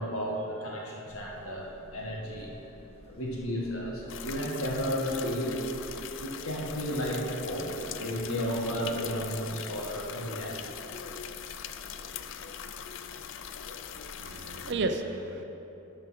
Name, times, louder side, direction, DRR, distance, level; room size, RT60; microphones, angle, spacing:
voice 1, 0.0-2.5 3.0-5.6 6.2-10.7, equal, 75° left, -2 dB, 1.7 m, -33 dB
sound 1, 1.1-14.8, equal, 25° left, 1.3 m, -51 dB
sound 2, 4.1-14.7, left 8 dB, 60° left, 0.4 m, -41 dB
voice 2, 7.6-8.5 10.4-10.5 14.2-15.4, right 3 dB, 50° right, 5 dB, 0.6 m, -35 dB
12.5 x 5.2 x 5.7 m, 3.0 s
head